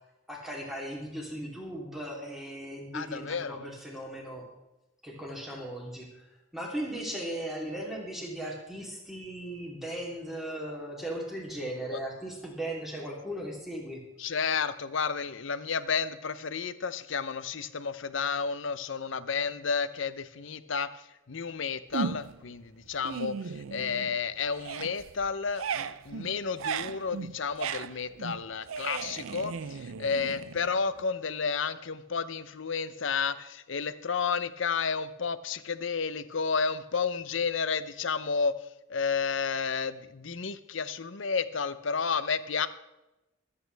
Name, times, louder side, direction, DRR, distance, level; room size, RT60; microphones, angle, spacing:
voice 1, 0.3-4.4 5.0-6.1 6.5-14.0, right 1 dB, ahead, -3 dB, 3.1 m, -37 dB
voice 2, 2.9-3.7 11.9-12.0 14.2-42.7, left 5 dB, 65° left, 13 dB, 0.7 m, -31 dB
sound 1, 21.9-22.5 22.9-24.2 24.5-31.0, right 6 dB, 85° right, 0.5 m, -37 dB
24.0 x 8.6 x 3.4 m, 0.97 s
head